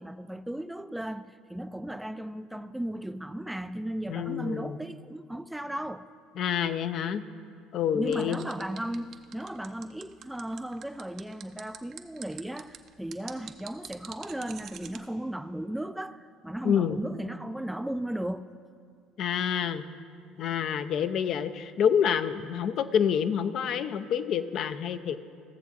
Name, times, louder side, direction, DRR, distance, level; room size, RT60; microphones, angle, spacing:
voice 1, 0.0-6.0 7.9-18.5, right 1 dB, 5° right, 0.4 m, -36 dB
voice 2, 4.1-4.8 6.4-7.2 7.7-8.5 16.6-17.0 19.2-19.8 20.4-25.2, left 8 dB, 60° left, 0.5 m, -27 dB
sound 1, 8.1-15.0, right 9 dB, 55° right, 0.7 m, -45 dB
15.5 x 7.0 x 4.2 m
supercardioid pair, 75°, 0 cm